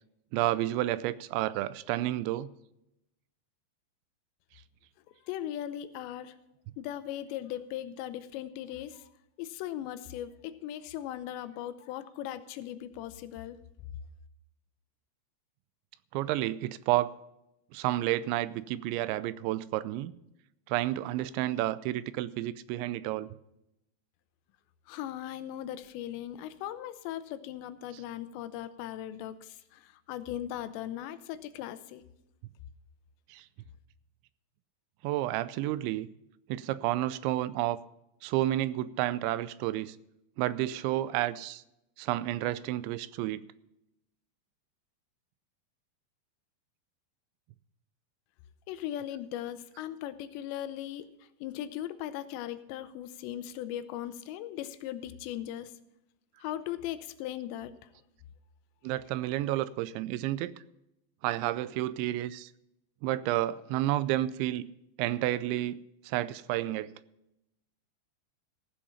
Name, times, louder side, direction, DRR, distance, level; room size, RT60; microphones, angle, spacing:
voice 1, 0.3-2.5 16.1-17.1 17.7-20.1 20.7-23.3 33.3-33.4 35.0-36.1 36.5-37.8 38.2-40.0 40.4-41.6 42.0-43.4 58.8-60.5 61.2-62.5 63.0-64.7 65.0-66.9, right 15 dB, 85° right, 2.9 m, -30 dB
voice 2, 5.3-6.3 6.8-9.0 9.4-13.6 24.9-32.0 48.7-51.1 51.4-55.7 56.4-57.7, left 12 dB, 80° left, 2.8 m, -38 dB
15.5 x 7.6 x 5.6 m
omnidirectional pair, 5.2 m